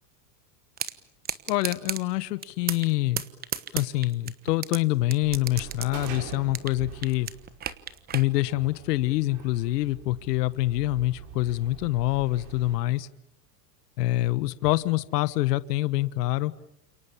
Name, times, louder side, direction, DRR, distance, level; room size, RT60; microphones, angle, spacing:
sound 1, 0.8-0.9 1.2-2.0 2.4-2.9 3.2-4.8 5.1-6.8 7.0-8.3, right 9 dB, 20° right, 1.2 m, -32 dB
voice 1, 1.5-3.2 3.7-7.3 8.1-13.1 14.0-16.5, left 17 dB, 70° left, 16 dB, 1.3 m, -26 dB
sound 2, 5.2-12.8, right 7 dB, 35° right, 5.0 m, -44 dB
30.0 x 28.0 x 7.1 m, 0.77 s
supercardioid pair, 155°, 49 cm